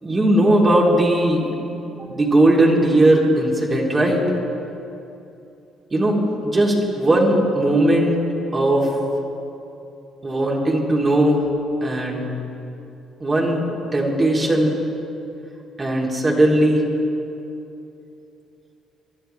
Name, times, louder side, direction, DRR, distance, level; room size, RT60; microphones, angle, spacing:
voice 1, 0.0-1.6 2.0-4.2 5.9-8.2 8.5-8.9 10.2-11.5 11.8-12.3 13.2-13.6 13.9-14.8 15.8-16.8, right 1 dB, 30° right, -3 dB, 3.6 m, -18 dB
22.0 x 12.0 x 3.5 m, 2.8 s
supercardioid pair, 65°, 0 cm